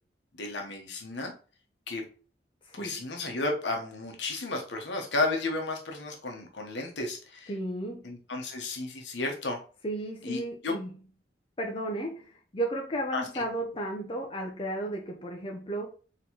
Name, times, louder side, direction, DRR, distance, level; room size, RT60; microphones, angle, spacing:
voice 1, 0.3-1.3 1.9-2.0 2.7-7.5 8.0-9.6 10.2-10.7 13.1-13.4, left 2 dB, 75° left, 2 dB, 0.9 m, -33 dB
voice 2, 2.7-3.0 7.5-8.0 9.8-11.0 11.6-15.9, right 1 dB, 30° left, 1 dB, 0.6 m, -34 dB
4.4 x 3.0 x 2.8 m, 0.39 s
head